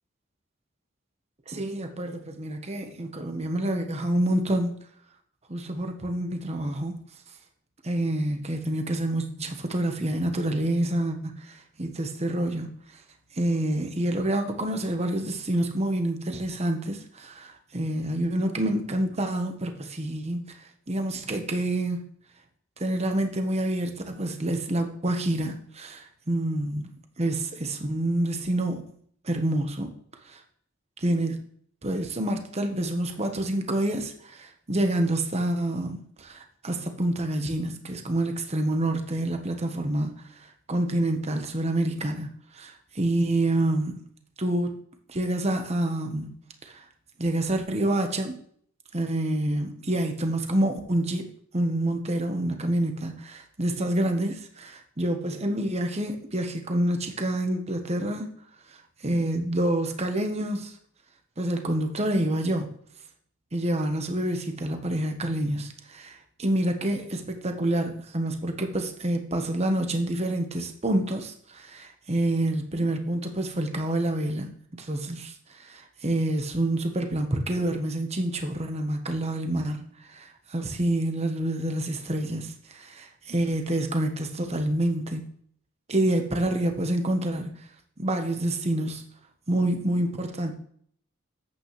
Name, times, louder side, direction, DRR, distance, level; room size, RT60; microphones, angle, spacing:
voice 1, 1.5-4.8 5.5-7.0 7.8-12.7 13.3-20.6 20.9-22.1 22.8-28.8 29.2-29.9 30.3-30.4 31.0-31.4 31.8-44.1 44.4-44.8 45.1-46.3 46.6-46.8 47.2-48.4 48.9-51.3 51.5-58.3 59.0-60.7 61.4-62.7 63.5-79.8 80.1-85.2 85.9-87.5 88.0-89.0 89.5-90.5, right 1 dB, 30° right, 5 dB, 1.1 m, -27 dB
9.8 x 8.4 x 3.2 m, 0.62 s
head